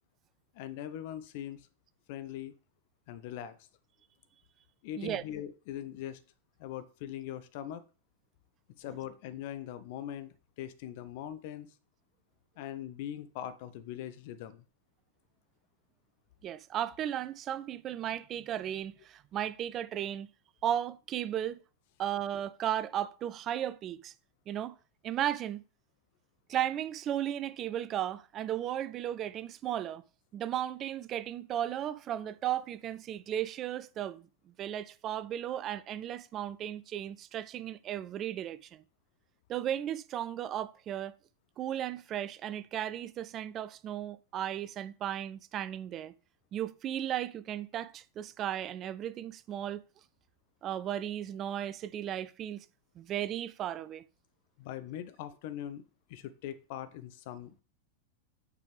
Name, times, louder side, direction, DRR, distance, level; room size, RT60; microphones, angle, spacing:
voice 1, 0.5-1.7 2.1-2.5 3.1-3.6 4.8-6.2 6.6-7.8 8.8-11.7 12.6-14.6 54.6-55.8 56.1-57.6, left 11 dB, 50° left, 0.6 m, -41 dB
voice 2, 16.4-20.3 20.6-21.6 22.0-24.1 24.5-24.8 25.0-25.6 26.5-30.0 30.3-34.3 34.6-38.8 39.5-41.1 41.6-46.1 46.5-49.8 50.6-52.7 53.0-54.0, right 11 dB, 30° right, 0.4 m, -35 dB
6.7 x 5.0 x 3.3 m
figure-of-eight pair, 90°, 0 cm